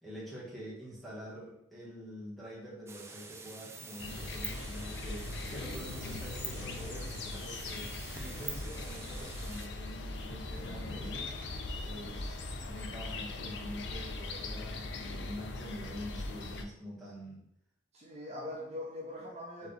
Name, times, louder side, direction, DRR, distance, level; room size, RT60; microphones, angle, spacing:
voice 1, 0.0-11.3 11.8-17.4 19.6-19.7, equal, ahead, -8 dB, 1.6 m, -46 dB
sound 1, 2.9-9.7, right 4 dB, 15° right, 0.4 m, -46 dB
sound 2, 4.0-16.6, left 2 dB, 75° left, 0.5 m, -40 dB
voice 2, 17.9-19.7, left 1 dB, 35° right, -5 dB, 0.9 m, -42 dB
4.2 x 3.5 x 3.4 m, 0.75 s
head